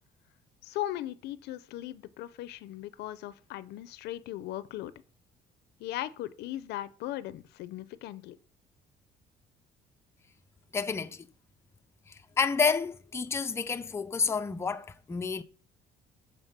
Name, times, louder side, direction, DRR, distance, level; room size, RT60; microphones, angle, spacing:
voice 1, 0.6-4.9 5.8-8.4, left 14 dB, 80° left, 0.5 m, -38 dB
voice 2, 10.7-11.3 12.1-15.4, left 5 dB, 15° left, 0.4 m, -30 dB
7.4 x 3.9 x 5.4 m
cardioid pair, 110°, 17 cm